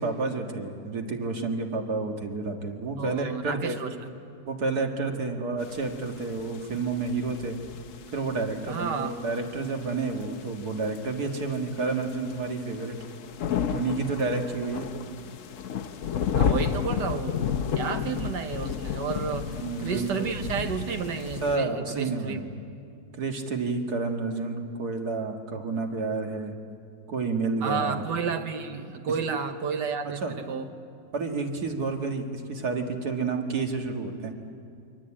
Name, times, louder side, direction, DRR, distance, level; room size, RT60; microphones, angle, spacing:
voice 1, 0.0-3.8 4.5-7.6 8.1-13.0 13.7-15.0 19.2-20.3 21.4-22.6 23.1-26.5 27.1-28.0 29.3-29.4 30.1-30.3 31.1-34.3, right 3 dB, 60° right, 3 dB, 2.3 m, -30 dB
voice 2, 3.0-3.9 8.7-9.1 16.3-22.4 27.6-30.7, right 6 dB, 80° right, 7 dB, 1.9 m, -31 dB
sound 1, 5.6-21.6, left 7 dB, 55° left, 1.0 m, -32 dB
28.5 x 23.0 x 8.8 m, 2.5 s
omnidirectional pair, 1.8 m